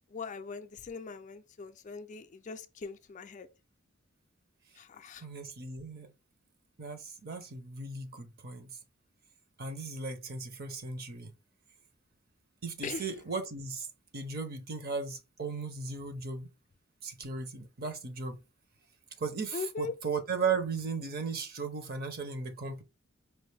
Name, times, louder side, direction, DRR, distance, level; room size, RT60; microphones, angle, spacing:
voice 1, 0.1-3.5 4.8-5.3 12.8-13.1 19.5-19.9, left 4 dB, 35° left, 0.4 m, -40 dB
voice 2, 5.2-6.1 6.8-8.7 9.6-11.3 12.6-13.9 14.1-16.5 17.0-18.4 19.2-22.8, right 5 dB, 50° right, 0.7 m, -36 dB
4.5 x 2.5 x 3.2 m
head